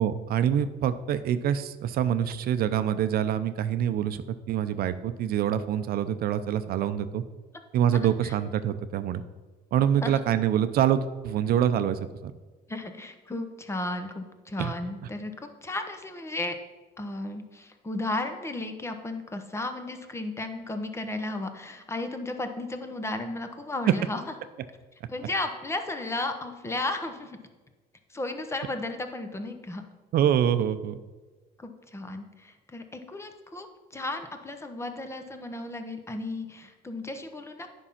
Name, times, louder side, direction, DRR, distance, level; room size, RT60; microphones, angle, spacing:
voice 1, 0.0-7.2 7.7-9.2 9.7-12.3 14.6-14.7 30.1-31.0, right 9 dB, 65° right, 11 dB, 0.6 m, -25 dB
voice 2, 12.7-16.6 17.0-24.2 25.1-27.4 28.1-29.8 31.6-33.7 33.9-37.7, left 2 dB, 15° left, 7 dB, 1.0 m, -34 dB
9.9 x 5.5 x 5.7 m, 1.3 s
cardioid pair, 110°, 17 cm